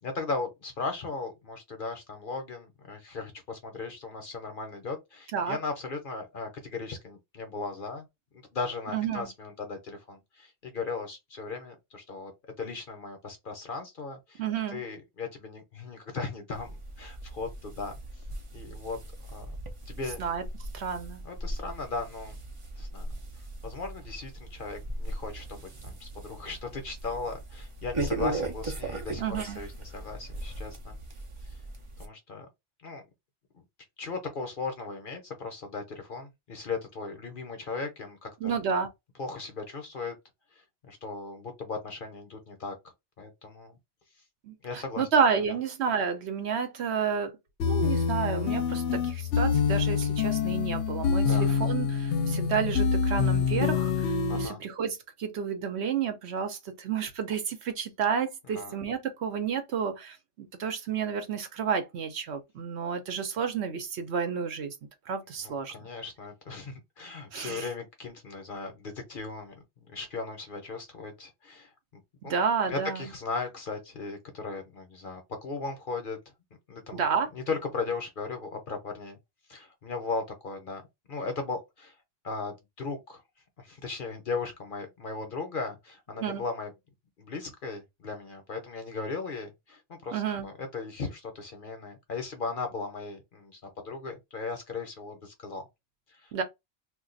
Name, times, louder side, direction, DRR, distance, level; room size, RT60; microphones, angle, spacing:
voice 1, 0.0-8.1 8.3-12.3 12.6-14.4 14.7-17.9 18.5-19.0 19.3-19.5 19.9-20.2 21.2-22.3 22.8-23.1 23.6-31.0 31.5-31.6 32.0-32.5 32.8-33.0 33.5-33.6 34.0-38.6 39.2-40.1 40.5-42.8 43.2-43.8 44.6-45.1 51.2-51.5 54.3-54.6 58.5-58.8 65.4-72.3 72.7-76.2 76.7-77.0 77.3-79.2 79.5-80.8 81.1-81.9 82.2-83.2 83.6-86.7 87.2-95.6 96.1-96.3, left 4 dB, 50° left, 0.9 m, -37 dB
voice 2, 8.9-9.3 14.4-14.8 20.2-20.4 20.7-21.2 29.2-29.6 38.4-38.9 44.4-47.4 47.7-64.7 65.1-65.9 67.3-67.7 72.2-73.1 76.9-77.3 86.2-86.4 90.1-90.5 96.3-96.4, right 6 dB, 65° right, 0.9 m, -30 dB
sound 1, 16.5-32.1, right 2 dB, 40° right, 0.5 m, -38 dB
sound 2, 47.6-54.5, left 6 dB, 75° left, 0.9 m, -26 dB
2.4 x 2.4 x 3.8 m
omnidirectional pair, 1.2 m